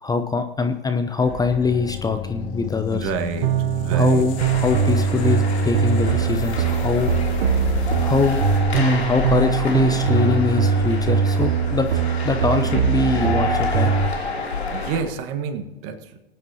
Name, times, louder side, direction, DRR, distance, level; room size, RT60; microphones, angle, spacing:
voice 1, 0.0-3.1 3.9-7.1 8.0-8.4 8.8-13.9, left 4 dB, 10° left, 7 dB, 0.7 m, -23 dB
sound 1, 1.2-8.6, left 8 dB, 60° left, 2.1 m, -32 dB
voice 2, 2.9-4.3 14.7-16.2, right 6 dB, 45° right, 8 dB, 1.6 m, -29 dB
sound 2, 3.4-14.1, right 8 dB, 65° right, 1.0 m, -21 dB
sound 3, 4.4-15.0, left 4 dB, 90° left, 2.9 m, -28 dB
22.0 x 9.2 x 2.9 m, 1.2 s
hypercardioid pair, 95°, 31 cm